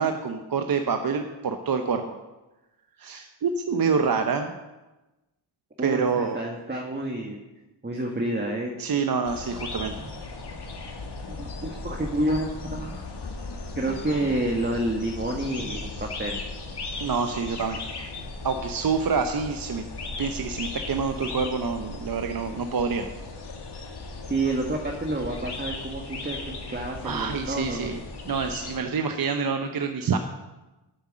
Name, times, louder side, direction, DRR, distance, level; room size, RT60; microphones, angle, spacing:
voice 1, 0.0-2.0 3.0-4.5 5.8-6.4 8.8-10.0 17.0-17.8 18.4-19.8 20.2-23.1 27.0-28.0 28.2-30.2, right 5 dB, 45° right, 6 dB, 0.9 m, -27 dB
voice 2, 5.8-7.4 7.8-8.7 11.3-12.9 13.7-16.4 24.3-27.9, right 1 dB, 20° right, 1 dB, 1.5 m, -29 dB
sound 1, 9.2-28.8, left 3 dB, 55° left, 1.9 m, -37 dB
8.2 x 8.0 x 6.2 m, 1.1 s
cardioid pair, 55°, 48 cm